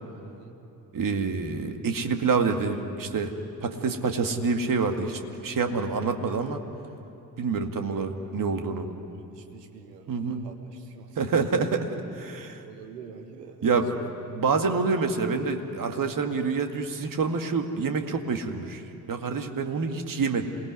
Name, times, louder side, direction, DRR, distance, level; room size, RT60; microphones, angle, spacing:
voice 1, 0.2-0.5 9.3-11.2 12.6-13.8, right 6 dB, 80° right, 6 dB, 1.6 m, -46 dB
voice 2, 0.9-3.3 3.6-6.6 7.4-8.9 10.1-10.4 11.2-12.6 13.6-13.9 14.3-20.5, right 4 dB, 40° right, 5 dB, 2.2 m, -27 dB
27.5 x 20.0 x 9.7 m, 3.0 s
figure-of-eight pair, 45°, 48 cm